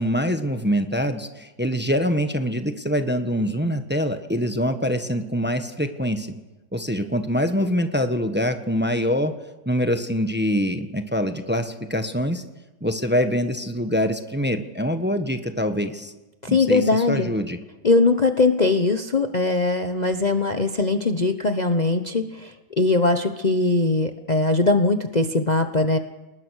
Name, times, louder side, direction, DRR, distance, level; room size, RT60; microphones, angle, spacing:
voice 1, 0.0-6.3 6.7-9.3 9.6-12.4 12.8-16.1 16.5-17.6, equal, 5° right, 8 dB, 1.3 m, -24 dB
voice 2, 16.4-17.3 17.8-26.0, left 3 dB, 30° left, 7 dB, 1.1 m, -21 dB
30.0 x 20.0 x 6.5 m, 1.1 s
omnidirectional pair, 1.6 m